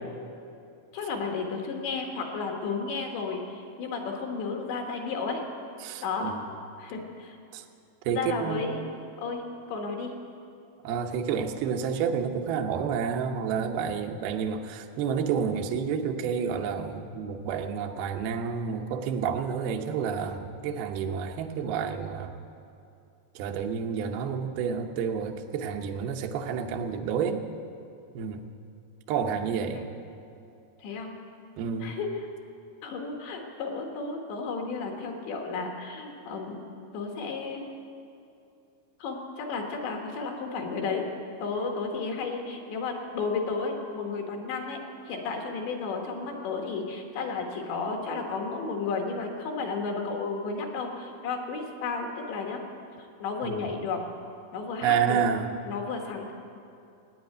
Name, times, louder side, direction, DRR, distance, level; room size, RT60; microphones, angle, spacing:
voice 1, 0.9-5.4 6.0-6.4 6.8-7.4 8.1-8.8 9.2-10.1 14.2-14.3 29.7-29.9 30.8-31.1 31.8-32.1 32.8-36.6 36.9-37.6 39.0-41.1 41.4-44.8 45.1-52.6 53.2-54.0 54.5-55.2 55.7-56.3, left 4 dB, 70° left, 2 dB, 3.5 m, -33 dB
voice 2, 5.8-6.4 7.5-7.6 8.0-8.6 10.8-22.4 23.4-27.5 28.1-28.4 29.1-29.8 31.6-32.0 53.4-53.6 54.8-55.5, right 7 dB, 85° right, 4 dB, 2.1 m, -29 dB
15.5 x 9.8 x 9.2 m, 2.6 s
omnidirectional pair, 5.7 m